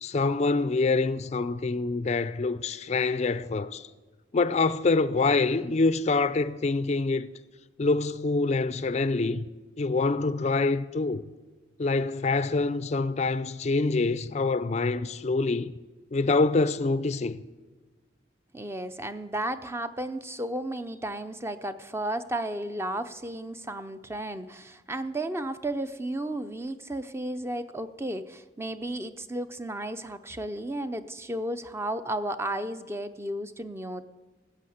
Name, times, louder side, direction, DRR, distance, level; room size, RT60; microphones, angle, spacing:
voice 1, 0.0-3.9 4.3-7.3 7.8-9.5 9.8-11.2 11.8-15.7 16.1-17.4, left 3 dB, 35° left, 0.4 m, -25 dB
voice 2, 18.5-34.0, right 1 dB, 15° right, 0.5 m, -33 dB
14.0 x 8.4 x 7.9 m
head